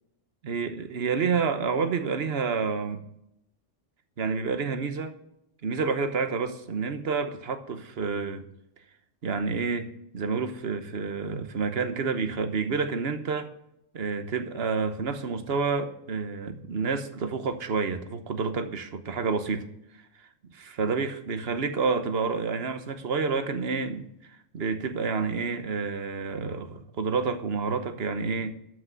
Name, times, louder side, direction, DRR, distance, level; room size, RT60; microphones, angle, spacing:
voice 1, 0.4-3.1 4.2-5.1 5.6-8.5 9.2-9.9 10.1-13.5 13.9-19.7 20.8-28.5, right 5 dB, 60° right, 1.3 m, -29 dB
13.0 x 6.2 x 6.9 m
omnidirectional pair, 1.2 m